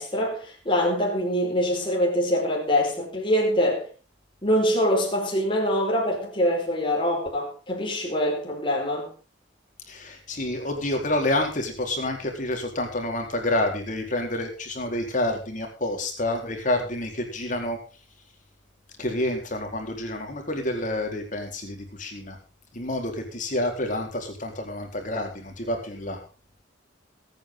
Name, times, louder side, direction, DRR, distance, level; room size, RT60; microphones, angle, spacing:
voice 1, 0.0-3.9 4.4-9.1, equal, 25° left, 4.8 m, -24 dB
voice 2, 9.9-17.8 19.0-22.4 22.7-26.2, left 1 dB, 40° left, 4.1 m, -28 dB
22.0 x 9.3 x 3.8 m
head